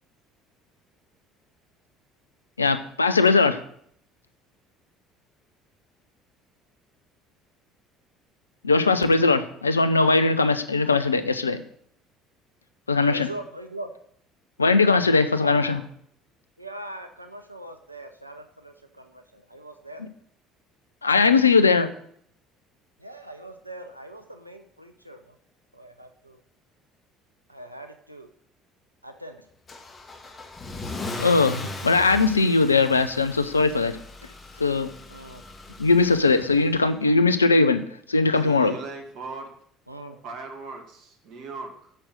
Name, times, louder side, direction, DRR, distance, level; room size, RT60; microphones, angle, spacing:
voice 1, 2.6-3.6 8.6-11.6 12.9-13.3 14.6-15.8 20.0-20.1 21.0-21.9 31.2-34.0 34.6-34.9 35.8-37.8 38.1-38.7, left 3 dB, 85° left, 11 dB, 0.5 m, -20 dB
voice 2, 13.1-13.9 15.4-15.8 16.6-20.0 23.0-25.4 25.7-26.4 27.5-28.3 29.0-29.4 35.1-35.4 39.9-40.2, right 1 dB, 90° right, 6 dB, 0.6 m, -41 dB
Car / Engine starting / Accelerating revving vroom, 29.7-36.8, left 2 dB, 30° left, 1.4 m, -38 dB
voice 3, 38.4-39.5 40.2-41.9, right 3 dB, 55° right, 3 dB, 1.9 m, -38 dB
7.5 x 6.3 x 6.6 m, 0.65 s
figure-of-eight pair, 60°, 0 cm